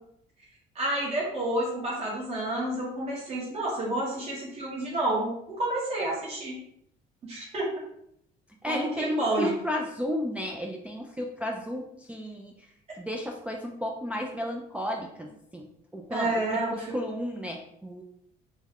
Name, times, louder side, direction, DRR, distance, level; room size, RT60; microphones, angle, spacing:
voice 1, 0.7-6.5 7.2-7.7 8.7-9.5 16.1-16.9, right 1 dB, 40° right, -5 dB, 1.2 m, -29 dB
voice 2, 8.6-12.5 13.0-18.0, equal, 10° right, 0 dB, 0.3 m, -33 dB
3.1 x 2.3 x 3.4 m, 0.73 s
cardioid pair, 110°, 17 cm